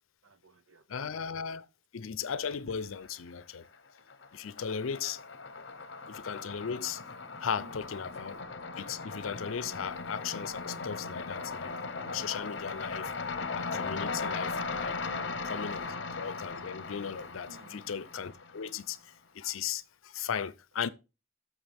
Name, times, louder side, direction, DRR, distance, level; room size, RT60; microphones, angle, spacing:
voice 1, 0.2-0.8 4.0-4.9 5.5-5.7 7.6-7.8 15.0-15.5 17.5-17.8, right 1 dB, 85° right, 0.9 m, -56 dB
voice 2, 0.9-1.7 1.9-3.6 4.3-5.2 6.1-7.0 7.4-8.4 8.8-11.7 12.1-13.1 13.5-15.0 15.4-20.9, left 7 dB, 85° left, 0.6 m, -37 dB
sound 1, 2.7-3.4 3.7-18.9, left 4 dB, 60° left, 0.9 m, -38 dB
13.0 x 6.4 x 3.5 m
head